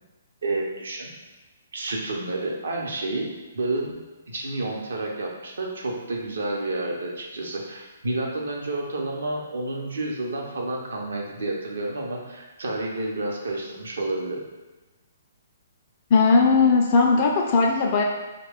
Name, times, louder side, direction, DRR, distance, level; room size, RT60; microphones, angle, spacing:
voice 1, 0.4-1.1 1.7-4.0 4.3-14.4, right 2 dB, 75° right, -1 dB, 0.7 m, -30 dB
voice 2, 16.1-18.0, left 4 dB, 40° left, 0 dB, 0.4 m, -18 dB
3.1 x 2.2 x 3.4 m, 1.2 s
figure-of-eight pair, 130°, 0 cm